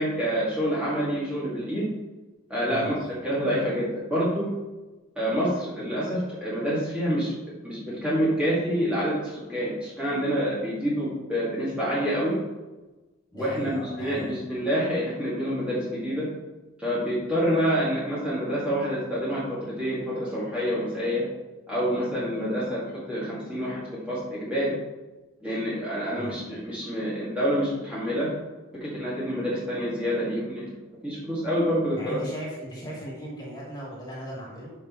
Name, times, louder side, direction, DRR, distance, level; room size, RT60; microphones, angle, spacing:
voice 1, 0.0-1.9 2.5-4.5 5.2-7.3 7.6-12.4 13.3-16.3 16.8-21.3 21.7-22.8 23.1-24.7 25.4-28.3 28.8-30.7 31.0-32.2, equal, 5° right, -9 dB, 2.2 m, -27 dB
voice 2, 13.3-14.4 26.1-26.4 31.9-34.7, right 1 dB, 20° left, -6 dB, 2.7 m, -37 dB
10.5 x 6.2 x 3.2 m, 1.1 s
head